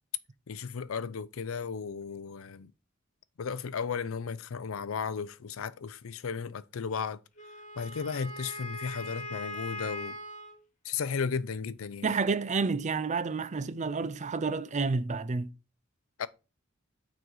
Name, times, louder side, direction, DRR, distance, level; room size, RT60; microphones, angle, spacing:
voice 1, 0.5-2.7 3.4-7.2 7.8-10.2 10.8-12.1 16.2-16.3, left 6 dB, 80° left, 0.5 m, -35 dB
Wind instrument woodwind instrument, 7.4-10.6, left 1 dB, 40° left, 1.8 m, -41 dB
voice 2, 12.0-15.5, right 4 dB, 35° right, 0.5 m, -30 dB
9.1 x 4.0 x 4.7 m
head